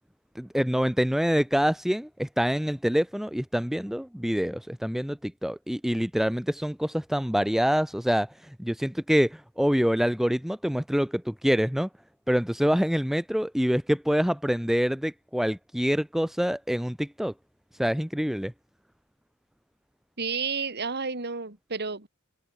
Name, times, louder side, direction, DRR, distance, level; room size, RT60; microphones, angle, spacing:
voice 1, 0.4-11.9 12.3-17.3 17.8-18.5, equal, ahead, 0.7 m, -26 dB
voice 2, 20.2-22.1, right 5 dB, 50° right, 2.8 m, -31 dB
head